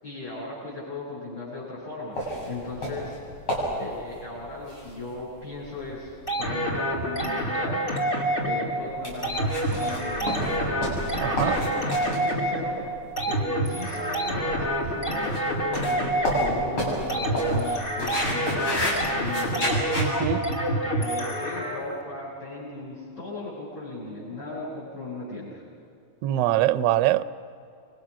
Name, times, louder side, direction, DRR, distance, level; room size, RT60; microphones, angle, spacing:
voice 1, 0.0-2.2 2.4-3.2 3.8-7.9 8.4-11.1 11.4-12.8 13.2-20.0 20.8-25.6, left 2 dB, 55° left, 8.5 m, -37 dB
sound 1, 2.1-20.1, equal, 85° left, 8.2 m, -32 dB
sound 2, 6.3-22.0, right 1 dB, 25° left, 2.7 m, -28 dB
voice 2, 11.2-11.6 20.0-20.4 26.2-27.2, right 14 dB, 65° right, 1.2 m, -23 dB
29.5 x 24.5 x 6.2 m
omnidirectional pair, 2.3 m